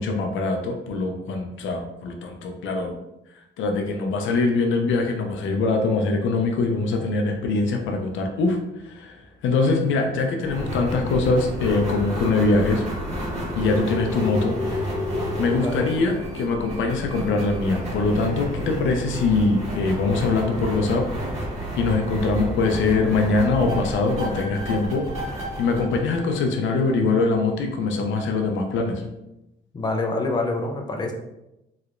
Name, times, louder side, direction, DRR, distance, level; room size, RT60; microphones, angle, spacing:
voice 1, 0.0-3.0 3.6-8.6 8.8-12.8 13.6-14.9 15.4-21.1 21.8-29.0, left 3 dB, 75° left, 3 dB, 0.5 m, -23 dB
sound 1, 10.4-26.9, equal, 35° right, 1.4 m, -30 dB
voice 2, 15.6-15.9 29.7-31.1, left 2 dB, 20° left, 2 dB, 0.5 m, -26 dB
3.1 x 2.9 x 2.5 m, 0.90 s
cardioid pair, 90°, 20 cm